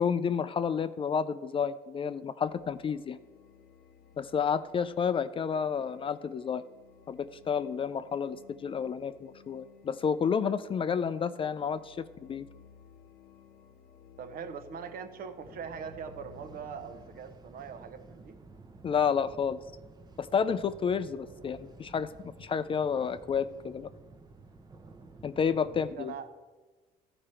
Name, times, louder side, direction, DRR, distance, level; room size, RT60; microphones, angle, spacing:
voice 1, 0.0-3.2 4.2-6.6 7.1-12.5 18.8-19.6 20.2-22.1 22.4-23.9 25.2-26.1, left 6 dB, 30° left, 14 dB, 0.4 m, -30 dB
sound 1, 2.4-17.2, left 7 dB, 60° left, 0.9 m, -57 dB
voice 2, 14.2-18.4 25.7-26.3, right 6 dB, 60° right, 9 dB, 0.9 m, -42 dB
sound 2, 15.4-25.9, right 3 dB, 25° right, 0.8 m, -52 dB
13.0 x 5.0 x 4.3 m, 1.3 s
cardioid pair, 110°, 17 cm